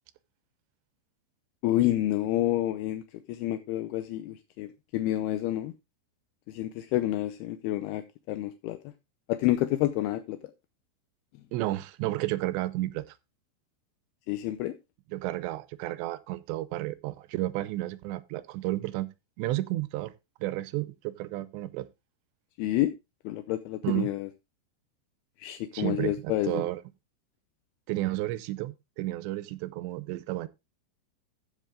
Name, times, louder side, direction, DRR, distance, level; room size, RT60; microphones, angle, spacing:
voice 1, 1.6-3.0 3.3-4.7 4.9-5.7 6.5-8.8 9.3-10.4 14.3-14.7 22.6-22.9 23.3-24.3 25.4-26.6, left 14 dB, 80° left, 2.4 m, -29 dB
voice 2, 11.5-13.2 15.1-19.1 19.4-20.1 20.4-21.9 23.8-24.1 25.7-26.8 27.9-30.5, right 16 dB, 85° right, 2.9 m, -32 dB
15.0 x 5.6 x 3.7 m
omnidirectional pair, 5.1 m